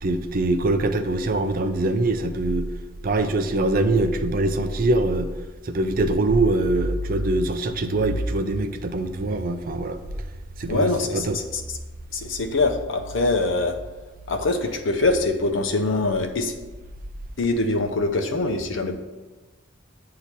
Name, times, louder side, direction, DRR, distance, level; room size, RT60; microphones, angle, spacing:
voice 1, 0.0-2.7 3.0-5.3 5.6-10.0 10.6-11.4, right 2 dB, 45° right, 8 dB, 0.5 m, -23 dB
voice 2, 10.7-11.4 12.1-13.7 14.3-16.5 17.4-18.9, left 2 dB, 70° left, 5 dB, 0.7 m, -23 dB
8.1 x 2.9 x 5.9 m, 1.2 s
head